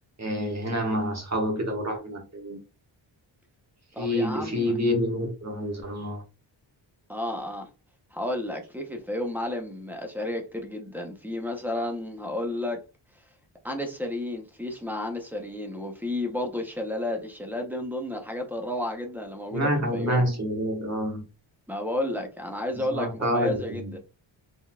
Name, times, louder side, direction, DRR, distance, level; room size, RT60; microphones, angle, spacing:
voice 1, 0.2-2.6 4.0-6.2 19.5-21.2 22.9-23.9, equal, 35° right, 1.6 m, -27 dB
voice 2, 3.9-4.7 7.1-7.7 8.1-12.8 13.6-20.2 21.7-24.0, left 1 dB, 5° right, 0.9 m, -32 dB
4.0 x 3.8 x 2.4 m
wide cardioid pair, 105°, 48 cm